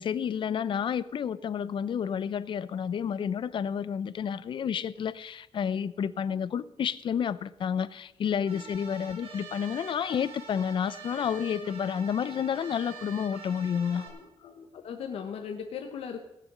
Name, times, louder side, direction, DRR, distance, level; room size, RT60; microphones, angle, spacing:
voice 1, 0.0-14.1, left 8 dB, 55° left, 0.6 m, -30 dB
sound 1, 8.5-14.1, right 5 dB, 70° right, 3.7 m, -45 dB
voice 2, 13.9-16.2, left 7 dB, 75° left, 1.3 m, -39 dB
17.5 x 6.9 x 6.2 m
cardioid pair, 120°, 10 cm